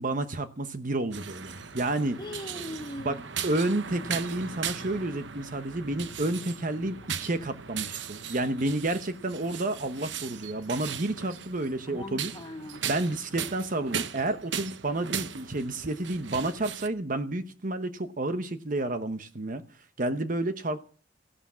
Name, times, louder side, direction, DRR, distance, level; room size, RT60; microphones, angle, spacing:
voice 1, 0.0-2.2 3.0-12.3 12.8-19.6 20.0-20.8, right 2 dB, 45° right, 1.0 m, -30 dB
sound 1, 1.1-16.9, right 7 dB, 70° right, 0.9 m, -38 dB
voice 2, 2.2-3.2 11.9-12.9, left 1 dB, 25° left, 1.3 m, -40 dB
15.5 x 12.0 x 7.3 m
head